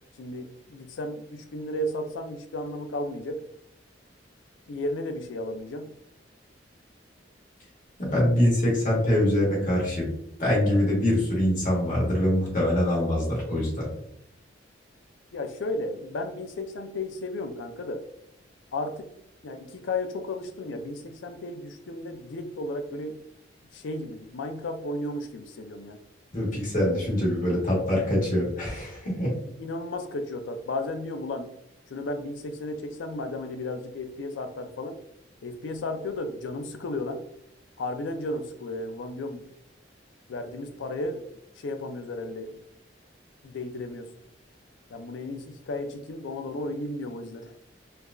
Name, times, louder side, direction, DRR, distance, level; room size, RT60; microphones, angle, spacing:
voice 1, 0.2-3.4 4.7-5.9 15.3-18.0 18.7-19.1 19.4-23.2 23.7-26.0 29.6-31.5 31.9-35.0 35.4-37.2 37.8-39.5 40.3-41.2 41.6-42.6 43.4-44.1 44.9-47.6, left 2 dB, 90° left, 8 dB, 0.4 m, -34 dB
voice 2, 8.0-10.1 10.4-13.9 26.3-29.3, left 1 dB, 45° left, -4 dB, 1.4 m, -24 dB
4.5 x 2.3 x 2.5 m, 0.76 s
head